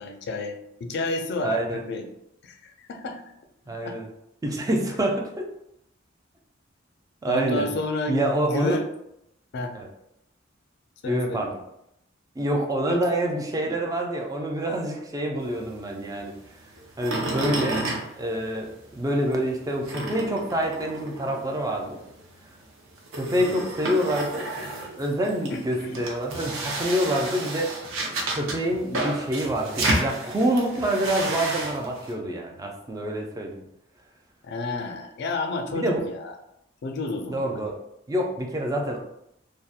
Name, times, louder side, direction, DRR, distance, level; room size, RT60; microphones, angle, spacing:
voice 1, 0.0-2.1 2.4-3.2 3.7-4.0 7.3-8.9 9.5-9.8 11.0-11.5 12.9-13.1 23.4-23.7 25.5-26.1 34.4-36.3 36.8-37.6, left 2 dB, 55° left, 4 dB, 0.4 m, -31 dB
voice 2, 1.4-1.8 3.7-4.1 4.4-5.5 7.2-7.7 8.1-8.8 9.7-9.9 11.0-11.5 12.4-16.3 17.0-17.8 18.2-18.7 19.0-22.0 23.1-24.5 24.8-27.7 28.3-33.6 35.7-36.0 37.3-37.7 38.1-39.0, right 1 dB, 20° right, 1 dB, 0.3 m, -26 dB
sound 1, 15.4-18.9 19.3-32.1, right 2 dB, 85° right, 0.6 m, -32 dB
2.7 x 2.1 x 2.3 m, 0.80 s
head